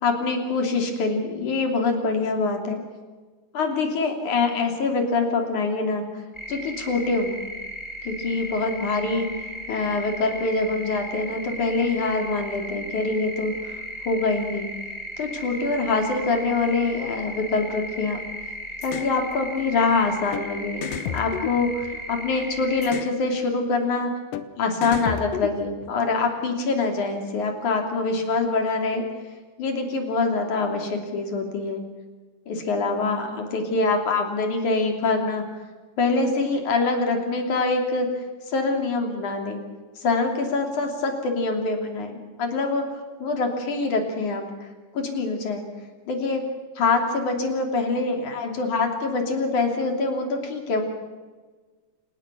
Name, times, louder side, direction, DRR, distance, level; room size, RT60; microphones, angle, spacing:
voice 1, 0.0-2.8 3.5-6.2 6.5-7.4 8.0-13.8 14.1-14.7 15.2-18.2 18.8-20.8 21.1-24.1 24.6-29.1 29.6-31.8 32.5-35.4 36.0-38.1 38.5-39.6 40.0-42.8 43.2-44.4 44.9-45.6 46.1-46.4 46.8-50.8, left 3 dB, 55° left, 3 dB, 4.2 m, -25 dB
sound 1, 6.3-23.0, equal, 5° left, 4.7 m, -36 dB
sound 2, 18.8-19.1 20.3-20.5 20.8-22.2 22.8-23.2 24.3-24.5 24.8-25.9, left 10 dB, 70° left, 2.5 m, -32 dB
28.5 x 19.0 x 6.1 m, 1.4 s
omnidirectional pair, 4.4 m